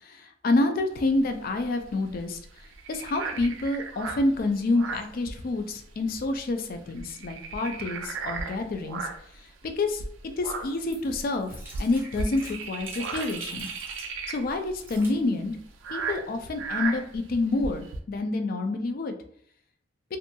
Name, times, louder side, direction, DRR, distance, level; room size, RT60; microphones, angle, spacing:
voice 1, 0.0-2.4 2.9-9.0 9.8-10.0 10.4-13.7 14.3-15.6 15.9-19.1, left 2 dB, 50° left, 7 dB, 0.3 m, -28 dB
sound 1, 0.9-5.9 6.2-6.4 6.7-9.4 9.9-18.0, right 4 dB, 85° right, 0.4 m, -36 dB
sound 2, 10.6-14.1 14.7-15.2 15.9-16.2, right 2 dB, 10° right, 0.5 m, -47 dB
2.7 x 2.2 x 2.6 m, 0.65 s
head